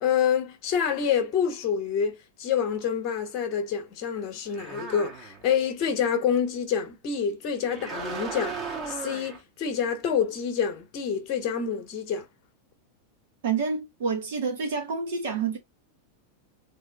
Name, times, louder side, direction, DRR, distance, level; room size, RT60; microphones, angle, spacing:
voice 1, 0.0-12.3, left 7 dB, 40° left, 1.4 m, -27 dB
sound 1, 4.5-5.5 7.7-9.4, right 4 dB, 25° right, 1.7 m, -36 dB
voice 2, 13.4-15.6, right 5 dB, 55° right, 2.0 m, -28 dB
3.6 x 3.4 x 3.5 m
figure-of-eight pair, 90°, 0 cm